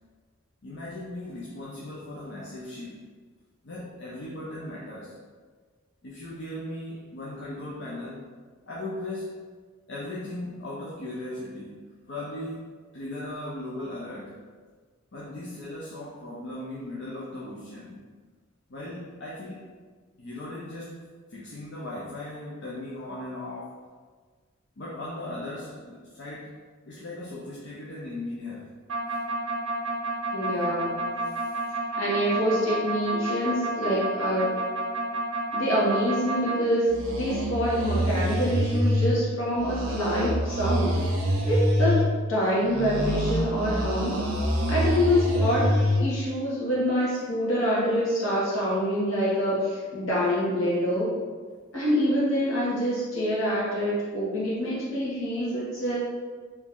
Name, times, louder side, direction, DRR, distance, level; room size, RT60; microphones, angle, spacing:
voice 1, 0.6-3.0 3.6-5.2 6.0-8.2 8.7-9.4 9.9-11.8 12.1-14.4 15.1-18.0 18.7-19.7 20.2-23.8 24.8-26.5 26.9-28.7 31.2-31.6, left 1 dB, 55° left, -6 dB, 0.5 m, -38 dB
sound 1, 28.9-36.6 36.9-39.1 39.6-42.1 42.6-46.0, equal, 85° right, 0.7 m, -27 dB
voice 2, 30.3-31.0 32.0-34.5 35.5-41.0 41.5-42.0 42.3-44.2 44.7-45.7 46.0-51.2 51.7-56.0, equal, 75° left, -8 dB, 1.4 m, -26 dB
3.0 x 2.7 x 3.5 m, 1.5 s
head